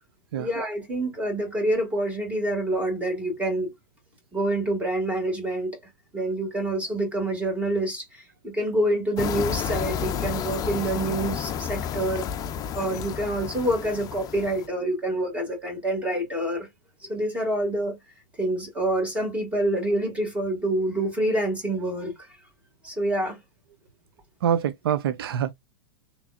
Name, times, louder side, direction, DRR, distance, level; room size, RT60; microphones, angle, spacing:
voice 1, 0.3-3.7 4.3-5.8 6.1-12.3 12.7-16.7 17.0-18.0 18.4-22.3 22.8-23.4, right 1 dB, 10° right, 2.3 m, -27 dB
sound 1, 9.2-14.7, left 8 dB, 30° left, 0.5 m, -31 dB
voice 2, 24.4-25.5, right 9 dB, 75° right, 0.4 m, -25 dB
3.4 x 3.0 x 2.4 m
hypercardioid pair, 110°, 12 cm